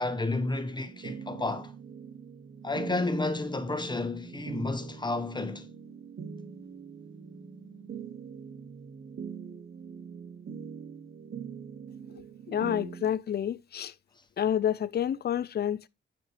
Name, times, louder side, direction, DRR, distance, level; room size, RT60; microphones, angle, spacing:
voice 1, 0.0-1.7 2.6-5.7, left 2 dB, 20° left, 0.9 m, -31 dB
sound 1, 0.8-13.1, right 6 dB, 55° right, 0.9 m, -43 dB
voice 2, 12.5-13.9 14.4-15.9, left 10 dB, 55° left, 0.4 m, -29 dB
9.4 x 5.1 x 3.3 m
wide cardioid pair, 105°, 20 cm